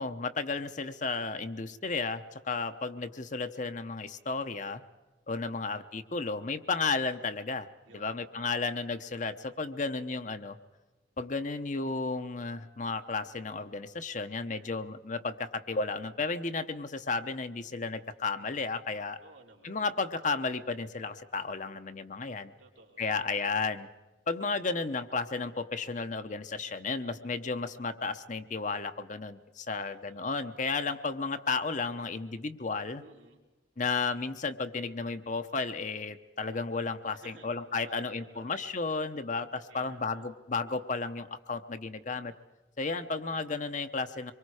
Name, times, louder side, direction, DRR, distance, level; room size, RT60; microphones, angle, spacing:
voice 1, 0.0-4.8 5.3-7.7 7.9-10.6 11.2-19.2 19.6-22.5 23.0-23.9 24.3-33.0 33.8-42.3 42.8-44.3, left 4 dB, 40° left, 9 dB, 0.8 m, -33 dB
voice 2, 5.3-5.8 7.9-8.7 14.4-14.7 19.2-19.9 22.6-23.4 24.5-24.7 29.7-30.4 33.0-33.4 37.1-37.5 37.8-38.6 39.7-40.2, right 2 dB, 80° right, 0 dB, 3.5 m, -56 dB
25.0 x 23.0 x 4.9 m, 1.2 s
head